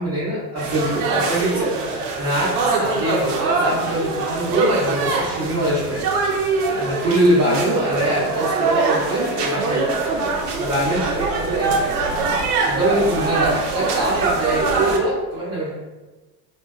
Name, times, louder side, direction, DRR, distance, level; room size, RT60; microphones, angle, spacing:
voice 1, 0.0-6.1 6.6-9.9 10.3-12.0 12.7-15.7, right 1 dB, 30° right, -8 dB, 0.7 m, -23 dB
sound 1, 0.6-15.0, right 3 dB, 70° right, 0.6 m, -23 dB
2.6 x 2.3 x 2.3 m, 1.2 s
figure-of-eight pair, 70°, 49 cm